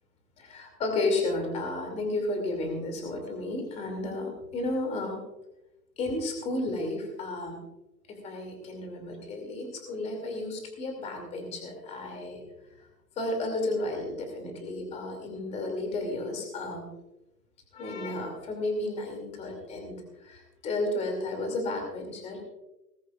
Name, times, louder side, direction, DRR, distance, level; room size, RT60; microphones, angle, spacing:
voice 1, 0.4-5.2 6.0-7.6 8.1-12.4 13.2-16.9 17.7-22.4, left 2 dB, 15° left, 3 dB, 2.6 m, -32 dB
19.5 x 14.5 x 2.4 m, 0.93 s
hypercardioid pair, 150°, 50 cm